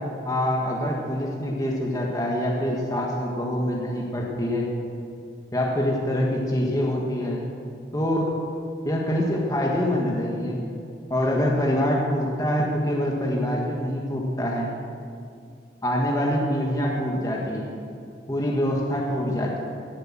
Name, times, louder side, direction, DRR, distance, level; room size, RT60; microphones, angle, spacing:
voice 1, 0.2-4.7 5.5-7.4 7.9-8.3 8.8-10.6 11.1-14.7 15.8-17.7 18.3-19.6, equal, 20° left, -2 dB, 1.6 m, -25 dB
18.0 x 7.9 x 7.4 m, 2.4 s
head